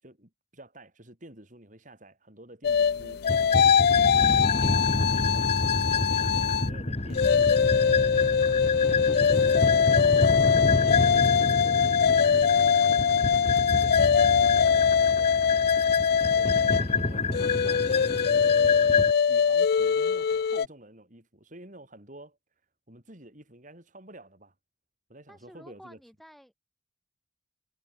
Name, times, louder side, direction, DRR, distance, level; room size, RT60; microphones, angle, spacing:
voice 1, 0.0-4.8 5.2-7.4 7.8-9.5 10.0-15.7 16.2-18.4 18.7-22.4 22.9-24.5 25.1-26.0, right 1 dB, 45° right, 6.6 m, -50 dB
sound 1, 2.6-6.7 7.1-20.7, left 7 dB, 60° left, 0.3 m, -22 dB
sound 2, 3.3-19.1, left 3 dB, 35° left, 1.6 m, -29 dB
voice 2, 25.3-26.5, equal, ahead, 6.2 m, -53 dB
head